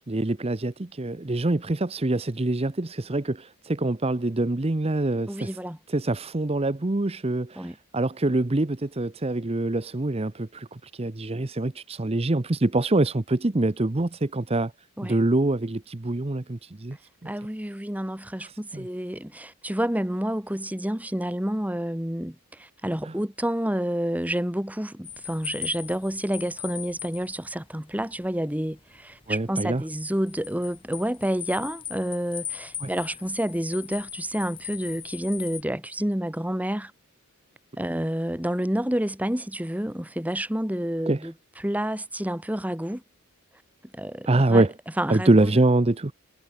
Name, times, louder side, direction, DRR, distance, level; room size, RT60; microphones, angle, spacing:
voice 1, 0.1-5.6 5.9-14.7 15.0-17.3 18.4-18.9 23.0-23.1 29.3-29.8 32.8-32.9 41.1-41.3 44.3-44.7 45.1-46.1, right 2 dB, 25° right, 0.7 m, -25 dB
voice 2, 5.3-5.8 7.6-7.7 15.0-15.2 17.2-36.9 37.8-43.0 43.9-44.7 45.0-45.5, equal, 5° right, 1.5 m, -29 dB
sound 1, 25.0-35.6, left 9 dB, 25° left, 2.8 m, -40 dB
head